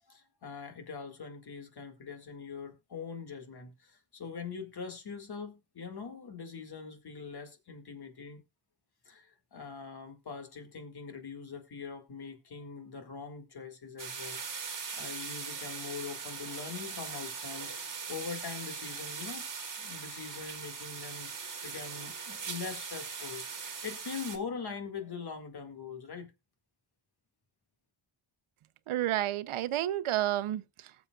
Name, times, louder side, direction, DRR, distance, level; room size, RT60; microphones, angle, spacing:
voice 1, 0.1-8.4 9.1-19.5 19.8-26.3, left 5 dB, 50° left, 2.0 m, -43 dB
sound 1, 14.0-24.4, right 5 dB, 40° right, 1.9 m, -40 dB
voice 2, 28.9-30.9, right 13 dB, 80° right, 0.7 m, -31 dB
19.5 x 7.2 x 2.3 m
wide cardioid pair, 135°, 49 cm